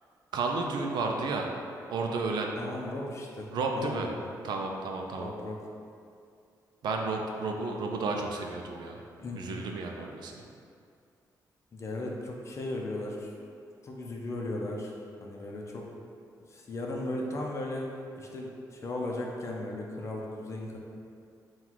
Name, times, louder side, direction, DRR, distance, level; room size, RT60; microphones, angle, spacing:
voice 1, 0.3-1.5 1.9-2.5 3.5-4.1 4.4-5.3 6.8-9.0 9.3-10.4, right 3 dB, 75° right, 1 dB, 0.4 m, -32 dB
voice 2, 2.5-3.5 3.8-4.1 5.2-5.6 9.2-9.6 11.7-13.3 13.8-14.9 15.2-15.9 16.5-17.9 18.1-20.8, left 2 dB, 40° left, -1 dB, 0.5 m, -36 dB
3.8 x 2.3 x 4.4 m, 2.4 s
cardioid pair, 115°, 7 cm